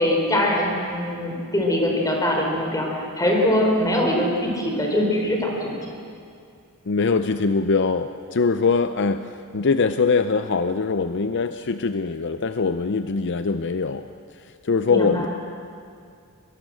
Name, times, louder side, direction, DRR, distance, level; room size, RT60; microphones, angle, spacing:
voice 1, 0.0-5.9 14.9-15.3, left 1 dB, 15° left, 0 dB, 4.3 m, -22 dB
voice 2, 6.9-15.3, left 4 dB, 55° left, 10 dB, 0.6 m, -23 dB
22.5 x 22.0 x 7.8 m, 2.4 s
head